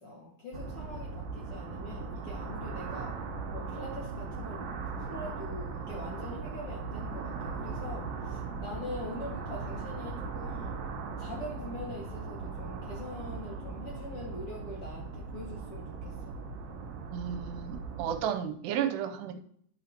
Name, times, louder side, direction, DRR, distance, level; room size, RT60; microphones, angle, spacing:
voice 1, 0.0-3.1 3.5-4.7 5.0-10.8 11.2-16.4, left 1 dB, 55° left, -4 dB, 1.6 m, -43 dB
sound 1, 0.5-18.2, right 4 dB, 55° right, 3.3 m, -39 dB
voice 2, 17.1-19.4, right 9 dB, 85° right, 8 dB, 2.7 m, -33 dB
10.0 x 8.2 x 2.8 m, 0.63 s
omnidirectional pair, 4.9 m